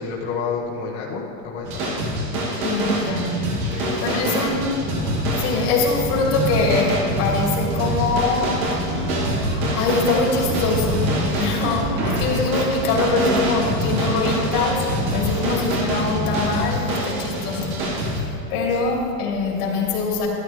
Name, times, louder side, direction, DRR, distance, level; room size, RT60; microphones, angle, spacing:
voice 1, 0.0-2.8 3.7-4.6 15.3-15.6 18.7-18.8, left 5 dB, 35° left, -6 dB, 1.6 m, -31 dB
sound 1, 1.6-18.2, right 1 dB, 60° right, 2.9 m, -25 dB
voice 2, 2.6-3.5 3.8-4.7 5.4-8.6 9.7-20.3, left 3 dB, 65° left, -1 dB, 2.8 m, -23 dB
sound 2, 4.9-16.5, right 1 dB, 15° right, 1.7 m, -30 dB
13.0 x 11.5 x 3.5 m, 2.5 s
supercardioid pair, 145°, 49 cm